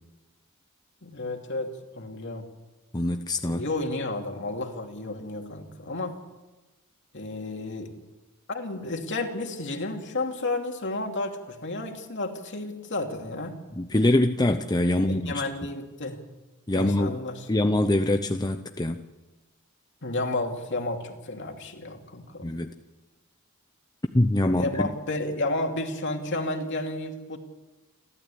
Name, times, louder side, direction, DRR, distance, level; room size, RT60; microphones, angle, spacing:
voice 1, 1.0-2.5 3.5-6.2 7.1-7.9 8.5-13.6 14.9-16.2 16.7-17.5 20.0-22.6 24.4-27.4, left 2 dB, 55° left, 3 dB, 2.7 m, -32 dB
voice 2, 2.9-3.6 13.8-15.4 16.7-17.2 17.5-19.0 22.4-22.7 24.1-24.9, left 1 dB, 20° left, 6 dB, 0.8 m, -24 dB
29.5 x 12.5 x 8.6 m, 1.1 s
head